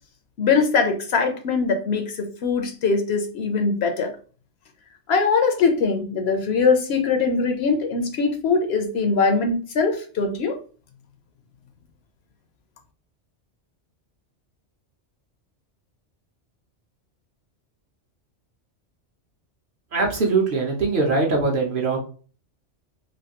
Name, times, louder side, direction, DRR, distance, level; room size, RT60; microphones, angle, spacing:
voice 1, 0.4-4.2 5.1-10.6, left 4 dB, 65° left, 5 dB, 0.8 m, -22 dB
voice 2, 19.9-22.0, right 3 dB, 55° right, 0 dB, 0.8 m, -22 dB
3.1 x 2.6 x 2.8 m, 0.40 s
omnidirectional pair, 1.2 m